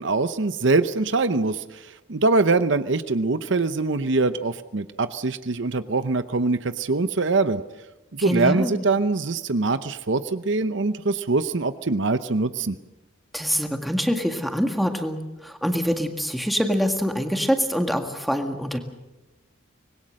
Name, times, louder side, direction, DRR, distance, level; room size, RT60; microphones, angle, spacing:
voice 1, 0.0-7.6 8.1-12.8, right 3 dB, 60° right, 12 dB, 0.8 m, -23 dB
voice 2, 8.2-8.9 13.3-18.8, equal, ahead, 5 dB, 1.8 m, -25 dB
25.0 x 20.5 x 6.5 m, 1.0 s
head